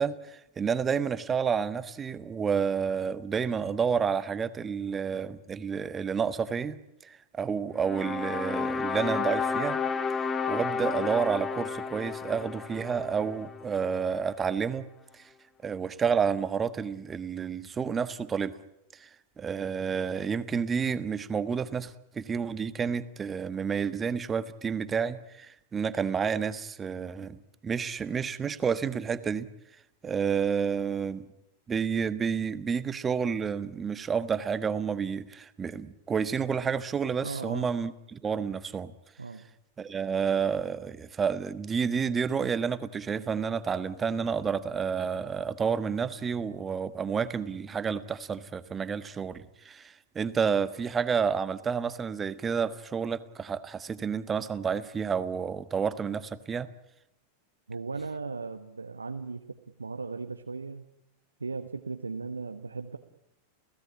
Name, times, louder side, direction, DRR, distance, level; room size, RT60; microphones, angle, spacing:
voice 1, 0.0-9.8 10.5-14.9 15.1-15.3 15.6-18.5 18.9-19.1 19.4-29.5 30.0-31.3 31.7-38.9 39.8-56.7, right 6 dB, 20° right, 14 dB, 1.3 m, -30 dB
sound 1, 7.8-14.0, left 6 dB, 20° left, 1.6 m, -32 dB
voice 2, 37.2-37.7 39.2-39.4 57.7-60.8 61.4-63.0, right 4 dB, 80° right, 7 dB, 1.2 m, -37 dB
29.0 x 17.0 x 9.9 m, 0.85 s
figure-of-eight pair, 90°, 0 cm